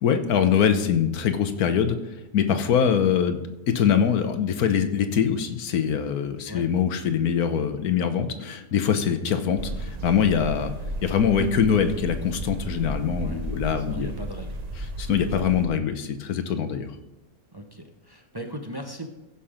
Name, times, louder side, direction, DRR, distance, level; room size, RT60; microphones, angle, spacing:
voice 1, 0.0-2.0 2.3-3.4 3.7-10.7 11.0-14.1 15.0-16.9, left 8 dB, 70° left, 8 dB, 1.4 m, -23 dB
sound 1, 9.6-15.7, right 1 dB, 80° right, 0.3 m, -34 dB
voice 2, 13.8-14.6 17.5-19.1, equal, 20° right, 3 dB, 0.7 m, -38 dB
15.0 x 5.8 x 5.1 m, 1.0 s
omnidirectional pair, 1.6 m